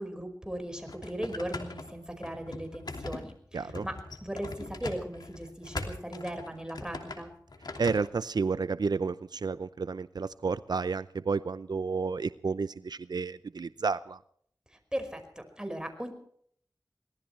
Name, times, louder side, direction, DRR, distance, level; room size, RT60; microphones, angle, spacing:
voice 1, 0.0-7.3 14.7-16.1, right 1 dB, 10° right, 6 dB, 5.2 m, -38 dB
door knob rattling wood door, 0.7-8.1, left 2 dB, 80° left, 2.9 m, -41 dB
voice 2, 3.5-3.9 7.8-14.2, right 4 dB, 80° right, 14 dB, 0.6 m, -31 dB
23.5 x 19.0 x 3.3 m, 0.64 s
wide cardioid pair, 50°, 7 cm